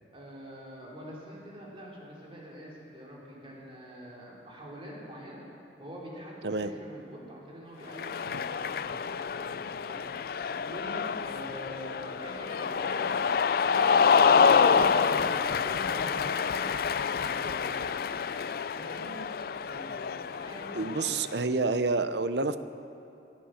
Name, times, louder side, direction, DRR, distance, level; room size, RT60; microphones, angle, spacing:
voice 1, 0.1-5.4 5.8-8.2 8.6-13.3 13.6-14.1 14.3-18.2 18.7-21.1, equal, 30° right, -4 dB, 3.6 m, -45 dB
Cheering, 7.9-21.3, left 6 dB, 55° left, 0.4 m, -27 dB
voice 2, 20.7-22.6, right 3 dB, 70° right, 12 dB, 0.7 m, -28 dB
24.0 x 9.3 x 6.4 m, 2.7 s
head